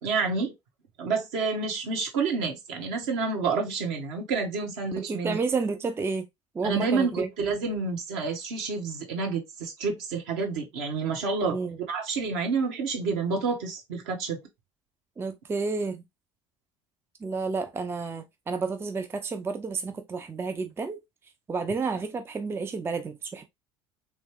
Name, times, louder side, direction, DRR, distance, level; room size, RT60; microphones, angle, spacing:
voice 1, 0.0-0.5 1.0-5.4 6.6-11.6 11.9-14.4, right 4 dB, 60° right, 1.3 m, -29 dB
voice 2, 5.0-6.3 6.5-7.3 11.5-11.8 15.2-16.0 17.2-21.0 21.5-23.4, right 4 dB, 15° right, 0.4 m, -30 dB
3.5 x 3.1 x 3.0 m
figure-of-eight pair, 65°, 15 cm